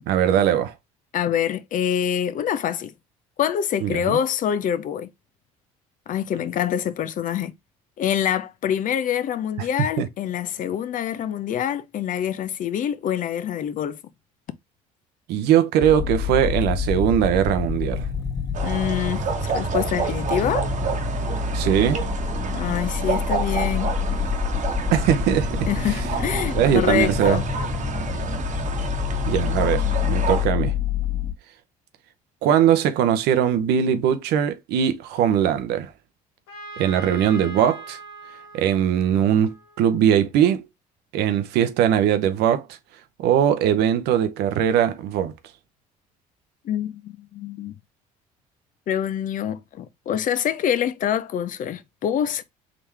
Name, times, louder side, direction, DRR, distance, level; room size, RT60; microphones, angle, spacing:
voice 1, 0.1-0.7 3.8-4.2 9.8-10.1 15.3-18.1 21.5-22.0 24.9-25.7 26.5-27.4 29.3-30.7 32.4-35.9 36.8-38.0 38.5-40.7 41.1-42.8 43.2-45.3, right 9 dB, 70° right, 0.7 m, -20 dB
voice 2, 1.1-2.9 3.4-5.1 6.1-7.5 8.0-14.0 18.6-20.7 22.5-23.9 25.7-27.4 46.6-47.8 48.9-52.4, left 9 dB, 50° left, 0.6 m, -25 dB
sound 1, 15.8-31.3, left 6 dB, 20° left, 1.6 m, -27 dB
sound 2, 18.5-30.5, right 6 dB, 45° right, 1.1 m, -30 dB
Trumpet, 36.5-40.2, right 2 dB, 80° left, 1.5 m, -41 dB
3.7 x 3.0 x 3.3 m
supercardioid pair, 75°, 17 cm